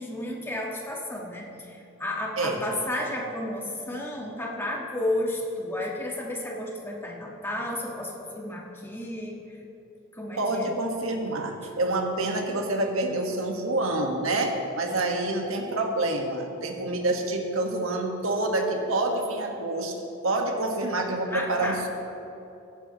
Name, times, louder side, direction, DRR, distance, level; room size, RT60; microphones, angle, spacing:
voice 1, 0.0-9.6 10.1-10.7 21.2-21.8, left 1 dB, 10° left, -2 dB, 1.6 m, -32 dB
voice 2, 10.4-19.9 20.2-21.9, right 2 dB, 80° right, 2 dB, 1.6 m, -27 dB
17.0 x 14.5 x 3.1 m, 3.0 s
head